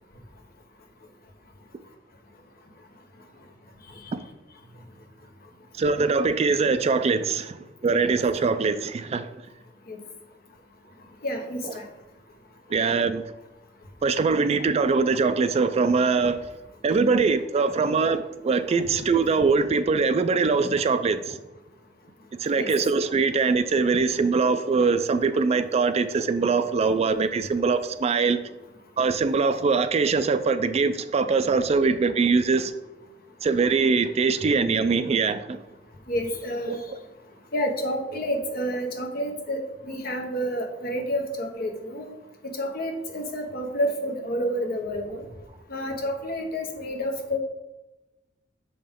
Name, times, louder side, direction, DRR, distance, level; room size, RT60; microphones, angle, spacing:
voice 1, 5.8-7.5 7.8-9.3 11.6-11.7 12.7-13.2 14.0-16.4 16.8-21.4 22.4-28.4 29.0-32.7 33.4-35.6 36.7-36.8, right 4 dB, 35° right, 0.3 m, -22 dB
voice 2, 11.2-11.8 22.6-22.7 36.1-36.8 37.5-42.1 42.6-45.2 45.7-47.4, equal, 55° left, 1.1 m, -29 dB
6.7 x 5.4 x 3.6 m
head